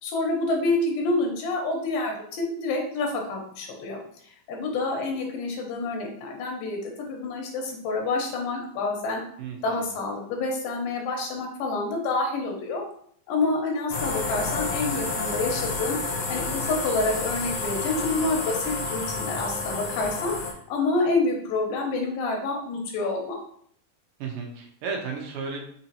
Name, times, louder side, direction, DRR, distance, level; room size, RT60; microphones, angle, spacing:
voice 1, 0.0-9.2 9.6-12.8 13.3-16.0 16.3-20.3 20.7-23.4, left 3 dB, 90° left, 1 dB, 2.7 m, -28 dB
voice 2, 9.4-9.9 24.2-25.6, right 5 dB, 75° right, 0 dB, 2.4 m, -34 dB
sound 1, 13.9-20.5, left 3 dB, 70° left, 1.3 m, -30 dB
6.2 x 2.8 x 2.8 m, 0.63 s
omnidirectional pair, 4.0 m